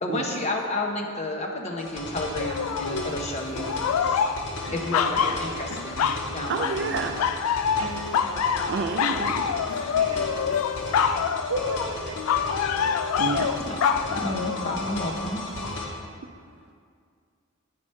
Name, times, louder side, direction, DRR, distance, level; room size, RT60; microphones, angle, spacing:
voice 1, 0.0-4.3 4.7-6.9 13.7-13.8 14.1-15.4, left 1 dB, 30° left, 1 dB, 0.7 m, -31 dB
sound 1, 1.8-15.8, left 1 dB, 60° left, 1.2 m, -36 dB
sound 2, 2.4-3.2 3.5-6.3 6.6-6.9 7.2-15.1 15.6-15.8, left 7 dB, 90° left, 0.3 m, -26 dB
voice 2, 6.5-7.3 8.7-9.5 13.2-13.5, right 4 dB, 50° right, 5 dB, 0.3 m, -29 dB
voice 3, 7.8-9.1 9.5-9.6 9.9-10.6 10.8-11.0 11.5-12.5, right 2 dB, 80° right, 3 dB, 0.8 m, -37 dB
8.6 x 4.8 x 4.3 m, 2.2 s
head